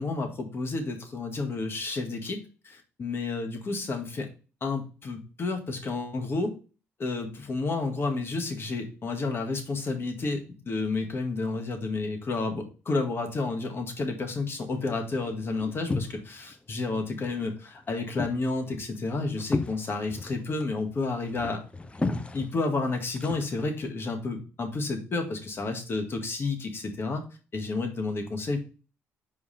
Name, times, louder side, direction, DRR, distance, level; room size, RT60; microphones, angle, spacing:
voice 1, 0.0-2.4 2.6-4.3 4.6-6.6 7.0-21.6 22.3-27.2 27.5-28.7, left 3 dB, 45° left, 4 dB, 1.9 m, -31 dB
sound 1, 14.6-16.5 16.8-17.5 17.8-23.8, left 2 dB, 20° left, 0.7 m, -35 dB
5.6 x 4.7 x 4.2 m, 0.34 s
cardioid pair, 75°, 6 cm